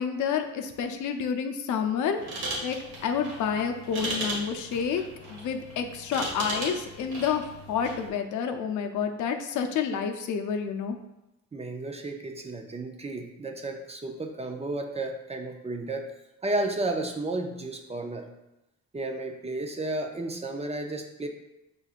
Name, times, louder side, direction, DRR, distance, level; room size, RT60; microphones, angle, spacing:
voice 1, 0.0-2.2 2.6-2.8 3.0-5.0 5.3-11.0, left 7 dB, 75° left, 5 dB, 0.6 m, -29 dB
sound 1, 2.2-8.1, right 1 dB, 85° right, 1.4 m, -37 dB
voice 2, 11.5-16.1 16.4-18.3 18.9-21.3, right 2 dB, 20° right, 4 dB, 0.5 m, -32 dB
5.1 x 3.8 x 2.4 m, 0.95 s
cardioid pair, 90°, 30 cm